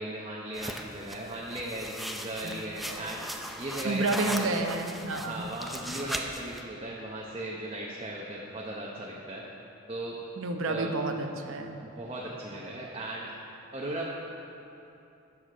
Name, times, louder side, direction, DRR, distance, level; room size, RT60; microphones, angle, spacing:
voice 1, 0.0-3.3 3.6-4.5 5.2-9.4 9.9-10.1 10.6-10.9 11.8-13.3 13.7-14.1, right 1 dB, 30° right, -4 dB, 0.9 m, -37 dB
sound 1, 0.5-6.6, equal, ahead, 0.4 m, -38 dB
voice 2, 3.8-5.5 10.4-11.8, right 2 dB, 90° right, 5 dB, 0.8 m, -30 dB
12.5 x 7.3 x 5.1 m, 2.9 s
head